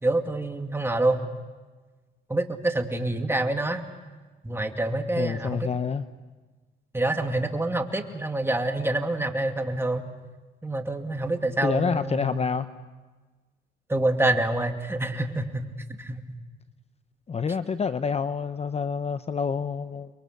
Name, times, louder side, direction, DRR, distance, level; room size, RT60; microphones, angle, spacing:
voice 1, 0.0-1.2 2.3-3.8 4.4-5.7 6.9-10.1 10.6-12.4 13.9-15.7 16.0-16.2, right 2 dB, 10° right, 5 dB, 2.3 m, -26 dB
voice 2, 5.2-6.0 11.6-12.7 17.3-20.1, left 6 dB, 30° left, 12 dB, 0.7 m, -27 dB
30.0 x 23.0 x 6.6 m, 1.3 s
cardioid pair, 90°, 20 cm